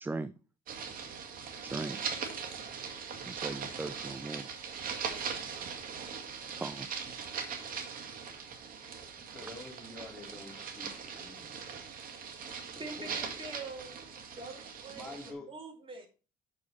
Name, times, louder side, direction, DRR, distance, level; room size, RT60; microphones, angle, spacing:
voice 1, 0.0-0.3 1.6-2.0 3.3-4.5 6.6-6.9, right 3 dB, 10° right, 0.4 m, -38 dB
sound 1, 0.7-15.3, right 6 dB, 55° right, 2.0 m, -40 dB
voice 2, 9.3-12.0 13.0-13.2 14.9-15.5, left 2 dB, 5° left, 3.3 m, -48 dB
voice 3, 12.8-16.1, right 3 dB, 30° right, 2.8 m, -45 dB
8.7 x 6.1 x 4.2 m
cardioid pair, 110°, 17 cm